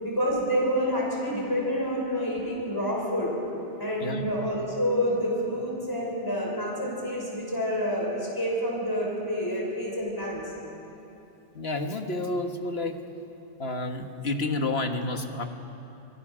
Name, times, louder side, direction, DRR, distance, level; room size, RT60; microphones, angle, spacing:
voice 1, 0.0-3.3 3.8-10.5, equal, 20° left, -3 dB, 5.6 m, -28 dB
voice 2, 11.5-13.0 13.6-15.5, left 2 dB, 60° left, 5 dB, 1.8 m, -30 dB
24.5 x 21.5 x 6.3 m, 2.9 s
omnidirectional pair, 1.2 m